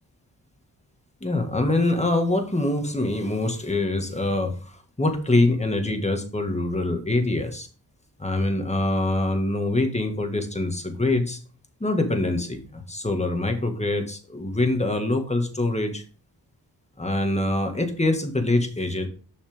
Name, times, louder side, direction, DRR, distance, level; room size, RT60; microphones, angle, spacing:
voice 1, 1.2-7.7 8.2-11.4 11.8-16.0 17.0-19.1, left 2 dB, 15° left, 5 dB, 1.9 m, -24 dB
6.5 x 6.4 x 3.6 m, 0.38 s
cardioid pair, 50°, 41 cm